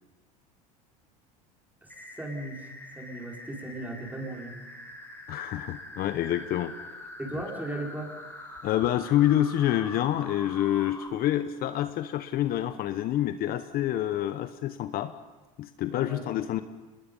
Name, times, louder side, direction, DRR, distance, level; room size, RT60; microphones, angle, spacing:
voice 1, 1.8-2.7 2.9-4.5 7.2-8.1 15.9-16.2, right 1 dB, 10° right, 0 dB, 4.8 m, -37 dB
sound 1, 1.9-11.1, left 1 dB, 10° left, 5.1 m, -44 dB
voice 2, 5.3-6.7 8.6-15.1 15.6-16.6, left 12 dB, 50° left, 11 dB, 1.0 m, -27 dB
24.5 x 21.0 x 5.5 m, 1.2 s
hypercardioid pair, 90°, 20 cm